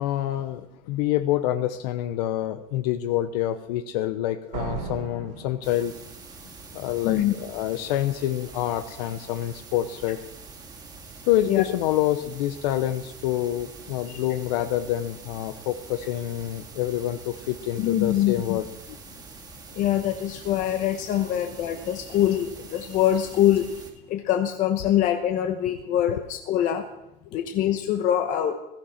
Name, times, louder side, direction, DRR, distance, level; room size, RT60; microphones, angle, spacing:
voice 1, 0.0-5.9 6.7-10.2 11.2-18.7, left 13 dB, 75° left, 10 dB, 0.8 m, -27 dB
Slam, 4.5-6.4, right 5 dB, 80° right, 3.3 m, -36 dB
sound 1, 5.6-23.9, right 4 dB, 20° right, 2.1 m, -45 dB
voice 2, 17.8-18.6 19.7-23.7 24.1-26.9 27.3-28.5, left 11 dB, 40° left, 6 dB, 1.0 m, -24 dB
16.0 x 15.0 x 4.4 m, 0.92 s
supercardioid pair, 165°, 21 cm